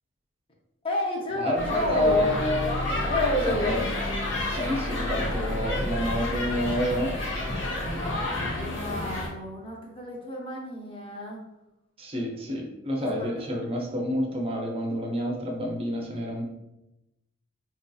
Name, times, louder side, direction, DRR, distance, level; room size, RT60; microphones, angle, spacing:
voice 1, 0.8-2.3 3.0-3.7 7.8-11.4 13.0-13.3, left 1 dB, 25° left, -1 dB, 0.6 m, -31 dB
voice 2, 1.4-2.8 3.5-3.8 4.5-7.2 12.0-16.4, left 1 dB, 25° right, 0 dB, 0.5 m, -28 dB
sound 1, 1.6-9.3, left 1 dB, 55° left, 1.0 m, -30 dB
4.4 x 2.7 x 2.3 m, 0.92 s
head